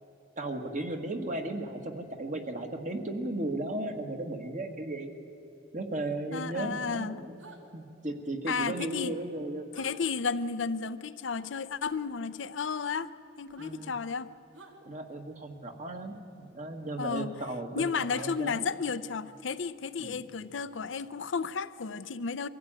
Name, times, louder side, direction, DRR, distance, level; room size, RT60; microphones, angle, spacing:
voice 1, 0.4-5.1 5.7-7.4 7.7-9.7 13.6-13.9 14.8-18.6 20.0-20.2, right 2 dB, 40° right, 4 dB, 1.7 m, -35 dB
voice 2, 6.3-7.2 8.5-9.1 9.8-13.1 13.4-14.3 17.0-17.3 17.8-22.5, left 5 dB, 70° left, 13 dB, 0.6 m, -33 dB
sound 1, 7.4-7.6 9.7-9.9 11.9-12.1 13.4-13.7 14.5-14.8 16.8-17.0 18.1-18.3, right 3 dB, 90° right, 2.4 m, -51 dB
23.0 x 15.0 x 8.9 m, 2.9 s
head